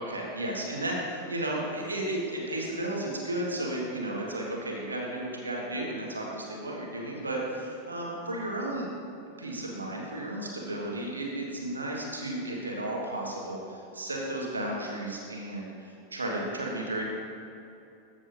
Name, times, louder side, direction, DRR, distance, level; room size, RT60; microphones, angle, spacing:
voice 1, 0.0-8.9 9.4-17.1, right 1 dB, 75° right, -2 dB, 1.6 m, -33 dB
14.0 x 7.2 x 2.6 m, 2.7 s
figure-of-eight pair, 90°, 0 cm